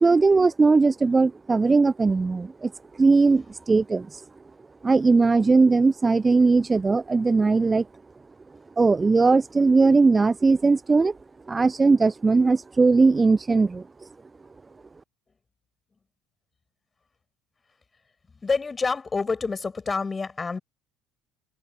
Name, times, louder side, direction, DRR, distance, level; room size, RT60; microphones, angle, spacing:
voice 1, 0.0-2.7 3.0-4.2 4.8-7.8 8.8-11.1 11.5-13.8, right 4 dB, 20° right, 0.6 m, -19 dB
voice 2, 18.4-20.6, left 4 dB, 25° left, 6.0 m, -27 dB
figure-of-eight pair, 60°, 0 cm